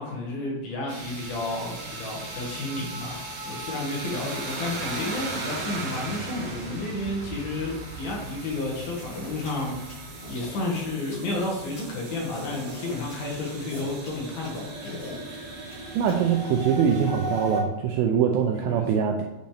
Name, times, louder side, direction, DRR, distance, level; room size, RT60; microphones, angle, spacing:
voice 1, 0.0-9.9 10.3-15.0 15.4-15.5 18.7-18.9, left 2 dB, 65° left, -3 dB, 3.5 m, -31 dB
sound 1, 0.9-17.6, right 2 dB, 60° right, 3.1 m, -37 dB
sound 2, 9.0-16.1, left 1 dB, 40° left, 3.5 m, -42 dB
voice 2, 16.0-19.2, right 7 dB, 85° right, 2 dB, 2.1 m, -23 dB
8.9 x 5.3 x 3.4 m, 1.0 s
omnidirectional pair, 4.8 m